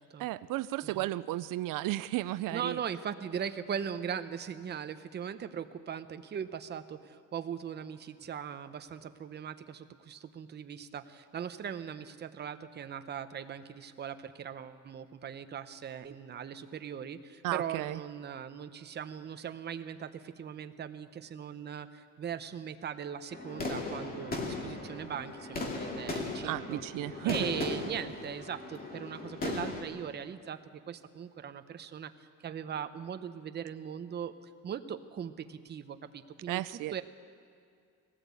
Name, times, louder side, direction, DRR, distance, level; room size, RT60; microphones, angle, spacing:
voice 1, 0.2-2.8 17.4-18.0 26.4-27.5 36.5-36.9, right 16 dB, 90° right, 16 dB, 0.5 m, -34 dB
voice 2, 2.5-26.8 27.2-34.3 34.6-37.0, right 8 dB, 35° right, 10 dB, 0.8 m, -40 dB
sound 1, 23.3-29.8, left 2 dB, 30° left, 2.4 m, -37 dB
19.5 x 17.5 x 8.3 m, 2.4 s
cardioid pair, 175°, 31 cm